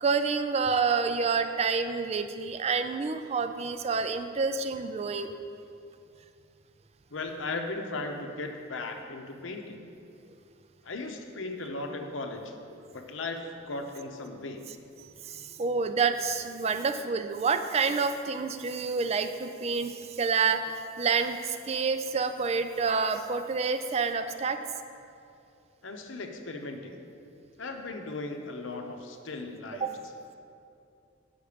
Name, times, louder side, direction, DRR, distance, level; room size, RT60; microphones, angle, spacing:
voice 1, 0.0-5.3 15.0-24.6 29.8-29.9, right 5 dB, 30° right, 9 dB, 0.3 m, -28 dB
voice 2, 7.1-9.8 10.8-12.5 12.9-13.4 13.7-14.6 25.8-27.0 27.6-29.9, left 3 dB, 65° left, 4 dB, 0.7 m, -37 dB
8.4 x 5.7 x 5.0 m, 2.5 s
head